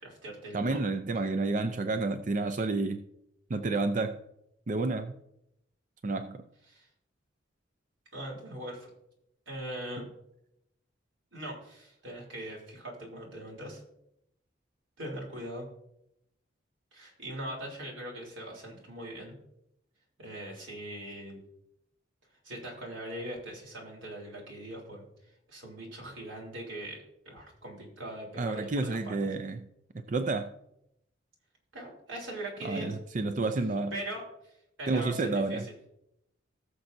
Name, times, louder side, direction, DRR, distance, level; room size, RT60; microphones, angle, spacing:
voice 1, 0.0-0.8 6.7-6.9 8.1-8.9 9.5-10.0 11.3-13.8 15.0-15.7 16.9-19.4 20.2-21.4 22.4-25.1 25.5-29.3 31.7-33.0 33.9-34.2 34.8-35.7, right 1 dB, 90° right, -1 dB, 3.5 m, -41 dB
voice 2, 0.5-3.0 3.5-4.2 4.7-5.1 6.0-6.4 10.0-10.1 28.4-29.6 29.9-30.5 32.6-33.9 34.9-35.7, right 3 dB, 40° right, 8 dB, 0.5 m, -30 dB
19.0 x 6.7 x 2.6 m, 0.80 s
head